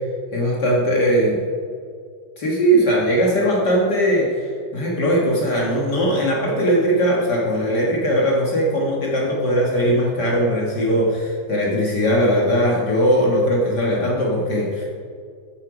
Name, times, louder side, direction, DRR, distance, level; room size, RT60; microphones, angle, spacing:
voice 1, 0.3-1.4 2.4-14.9, equal, 55° left, -3 dB, 2.2 m, -19 dB
13.0 x 8.7 x 5.0 m, 2.2 s
omnidirectional pair, 2.2 m